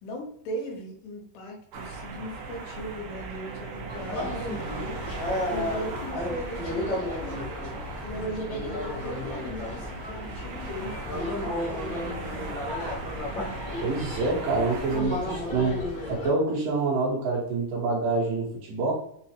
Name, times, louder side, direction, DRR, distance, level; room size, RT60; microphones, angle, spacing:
voice 1, 0.0-5.0 5.5-7.5 8.0-12.6, equal, 80° left, 1 dB, 2.8 m, -38 dB
sound 1, 1.7-15.0, right 4 dB, 85° right, 2.5 m, -38 dB
sound 2, 3.9-16.3, left 1 dB, 50° left, 1.2 m, -33 dB
voice 2, 13.8-18.9, right 3 dB, 70° right, -3 dB, 2.4 m, -27 dB
6.2 x 2.1 x 2.8 m, 0.68 s
omnidirectional pair, 4.5 m